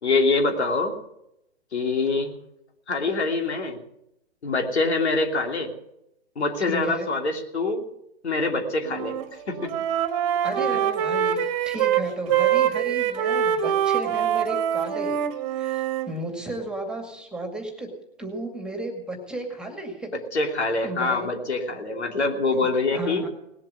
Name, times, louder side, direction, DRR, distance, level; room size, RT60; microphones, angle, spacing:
voice 1, 0.0-0.9 1.7-2.3 2.9-3.8 4.4-5.7 6.4-7.9 8.2-9.2 9.5-9.9 10.7-10.8 20.3-23.2, left 3 dB, 90° left, 4 dB, 3.1 m, -25 dB
voice 2, 6.6-7.1 10.4-11.4 11.7-15.2 15.5-17.9 18.2-20.1 20.8-21.3 22.9-23.3, right 1 dB, 5° right, 3 dB, 2.1 m, -34 dB
Wind instrument woodwind instrument, 8.8-9.2 9.5-16.1, right 9 dB, 30° right, 1.5 m, -24 dB
19.0 x 7.7 x 9.7 m, 0.82 s
hypercardioid pair, 150°, 32 cm